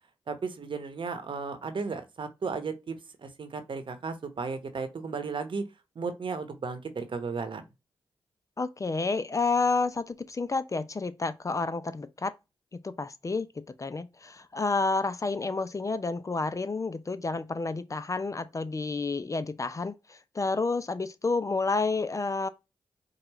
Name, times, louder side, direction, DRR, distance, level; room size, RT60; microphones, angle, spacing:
voice 1, 0.3-5.6 5.9-7.6, right 4 dB, 60° right, 1.0 m, -34 dB
voice 2, 8.6-12.3 12.8-13.5 13.8-22.5, left 3 dB, 35° left, 0.5 m, -30 dB
4.8 x 2.3 x 3.0 m
supercardioid pair, 45°, 10 cm